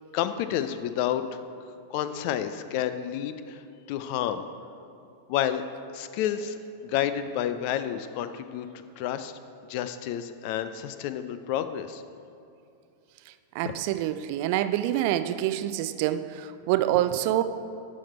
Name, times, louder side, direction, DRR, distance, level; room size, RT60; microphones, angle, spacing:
voice 1, 0.1-1.4 1.9-4.4 5.3-5.6 5.9-9.3 9.7-12.0 13.6-13.7, left 10 dB, 45° left, 11 dB, 0.5 m, -30 dB
voice 2, 13.3-17.4, right 13 dB, 45° right, 12 dB, 0.4 m, -26 dB
12.0 x 6.3 x 4.4 m, 2.6 s
figure-of-eight pair, 90°, 0 cm